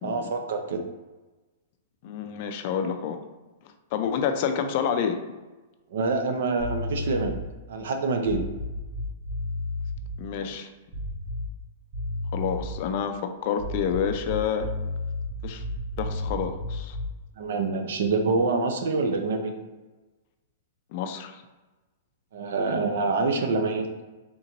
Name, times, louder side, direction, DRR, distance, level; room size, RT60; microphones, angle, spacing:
voice 1, 0.0-0.8 5.9-7.4 7.7-8.5 10.4-10.5 17.4-19.5 22.3-23.9, right 3 dB, 65° right, 5 dB, 0.6 m, -26 dB
voice 2, 2.0-3.2 3.9-5.2 10.2-10.7 12.3-14.7 15.4-15.6 16.0-17.0 20.9-21.4, left 7 dB, 35° left, 6 dB, 0.4 m, -28 dB
sound 1, 6.6-7.6 8.2-10.1 10.9-11.6 11.9-12.9 13.5-17.2, left 1 dB, 20° right, 0.7 m, -32 dB
3.9 x 3.6 x 2.9 m, 1.2 s
supercardioid pair, 170°, 0 cm